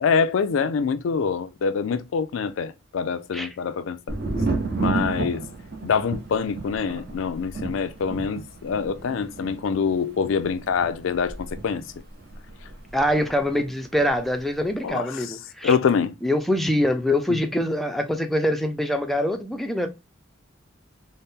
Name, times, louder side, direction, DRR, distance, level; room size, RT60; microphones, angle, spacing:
voice 1, 0.0-4.2 4.8-5.4 5.8-11.8 14.8-15.4 15.6-16.1, left 6 dB, 75° left, 0.4 m, -25 dB
Thunder, 4.1-13.7 14.0-14.7, right 3 dB, 55° right, 0.9 m, -32 dB
voice 2, 12.9-15.8 16.2-19.9, left 1 dB, ahead, 0.4 m, -24 dB
4.1 x 2.1 x 3.5 m
head